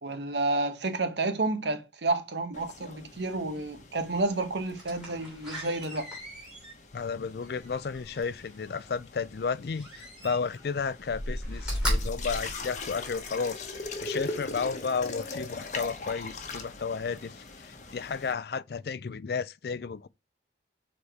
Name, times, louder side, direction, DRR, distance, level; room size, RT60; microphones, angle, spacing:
voice 1, 0.0-6.1, right 2 dB, 75° right, 1.0 m, -30 dB
sound 1, 2.5-18.3, left 3 dB, 40° left, 1.0 m, -42 dB
Slam, 4.8-8.6 9.7-10.7 11.0-13.3 13.8-13.9, equal, 5° right, 3.1 m, -35 dB
voice 2, 6.9-20.1, left 5 dB, 60° left, 0.4 m, -33 dB
4.9 x 4.2 x 4.7 m
head